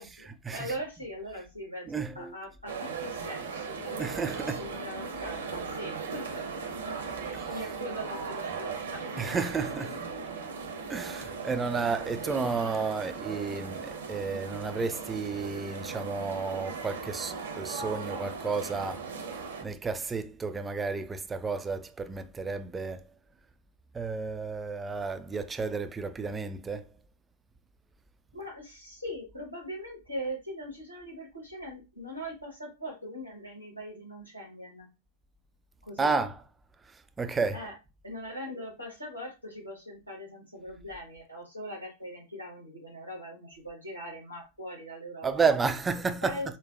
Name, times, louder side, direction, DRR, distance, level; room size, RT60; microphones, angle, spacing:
voice 1, 0.0-1.9 2.1-6.4 7.2-9.1 28.3-34.9 35.8-36.1 37.5-37.7 38.0-45.5 46.2-46.6, equal, 90° left, 1.4 m, -41 dB
voice 2, 1.9-2.3 4.0-4.6 7.3-7.4 9.2-10.0 10.9-19.1 19.6-23.0 23.9-26.9 36.0-36.3 37.2-37.6 45.2-46.4, right 4 dB, 15° right, 0.3 m, -31 dB
sound 1, 2.7-19.6, right 5 dB, 65° right, 0.6 m, -38 dB
4.6 x 2.1 x 2.5 m
figure-of-eight pair, 90°, 0 cm